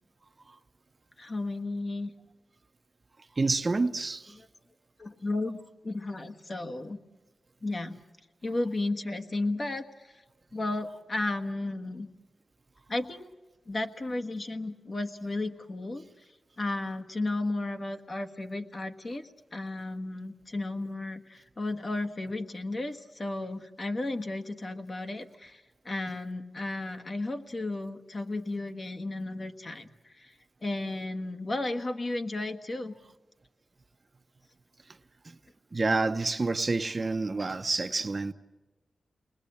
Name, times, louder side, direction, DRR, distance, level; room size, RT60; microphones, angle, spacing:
voice 1, 1.2-2.1 4.3-4.5 5.0-5.6 5.8-7.0 7.6-8.0 8.4-10.2 10.5-12.1 12.9-13.3 13.7-16.0 16.6-30.3 30.6-32.9, left 2 dB, 40° left, 1.5 m, -34 dB
voice 2, 3.4-4.4 35.2-35.4 35.7-38.3, right 3 dB, 35° right, 0.8 m, -28 dB
29.0 x 20.5 x 8.6 m
wide cardioid pair, 95°, 0 cm